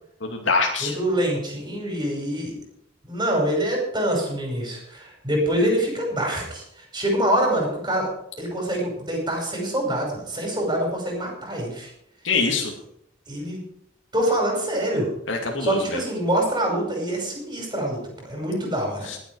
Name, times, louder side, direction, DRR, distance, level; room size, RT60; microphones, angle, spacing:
voice 1, 0.2-1.0 12.2-12.7 15.3-16.0 19.0-19.2, left 4 dB, 75° left, 1 dB, 2.4 m, -24 dB
voice 2, 0.8-2.5 3.0-6.6 6.9-8.1 8.4-11.9 13.3-13.6 14.1-15.1 15.6-19.1, right 1 dB, 25° right, 0 dB, 5.6 m, -25 dB
20.5 x 8.1 x 4.9 m, 0.73 s
head